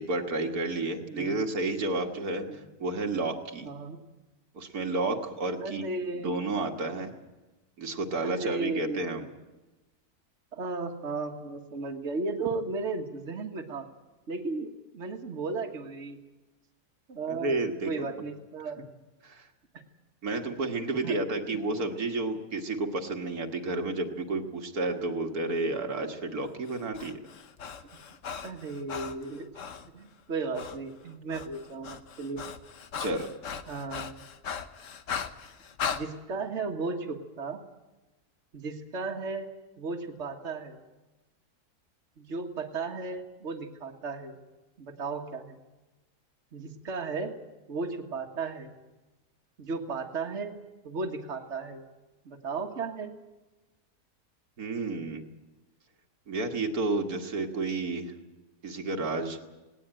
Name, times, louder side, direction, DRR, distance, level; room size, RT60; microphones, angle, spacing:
voice 1, 0.0-3.7 4.5-5.9 6.2-7.1 7.8-9.3 17.3-18.1 19.2-19.5 20.2-27.1 33.0-33.3 54.6-55.2 56.3-58.1 58.6-59.4, right 2 dB, 70° right, 3 dB, 2.0 m, -31 dB
voice 2, 1.0-1.5 2.5-2.7 3.7-4.0 5.6-6.3 8.2-9.3 10.5-13.9 14.3-16.2 17.1-18.8 20.5-20.6 21.0-21.2 21.5-21.6 28.4-29.5 29.9-32.5 33.7-34.2 35.9-37.6 38.5-39.5 39.8-40.8 42.2-44.4 44.8-45.6 46.5-47.3 47.7-48.7 49.6-50.6 50.8-51.8 52.3-53.1, right 3 dB, 50° right, 2 dB, 1.8 m, -35 dB
Breathing, 26.7-29.9 30.5-30.8 31.1-36.0, left 7 dB, 55° left, 1.3 m, -38 dB
19.0 x 18.0 x 8.9 m, 1.1 s
omnidirectional pair, 1.7 m